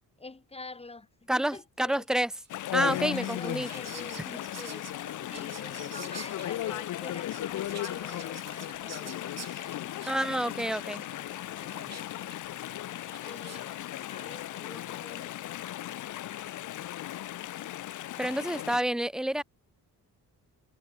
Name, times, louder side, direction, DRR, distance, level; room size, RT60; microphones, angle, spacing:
voice 1, 0.2-2.1 3.1-10.6 11.6-12.3 12.7-15.4, left 3 dB, 15° left, 3.7 m, -47 dB
voice 2, 1.3-2.3 2.7-3.7 4.3-4.4 10.1-11.0 18.2-19.4, right 1 dB, ahead, 0.3 m, -29 dB
Whispering, 2.4-13.9, right 7 dB, 45° right, 7.1 m, -49 dB
Chatter / Stream, 2.5-18.8, left 13 dB, 55° left, 0.5 m, -36 dB
wide cardioid pair, 155°, 36 cm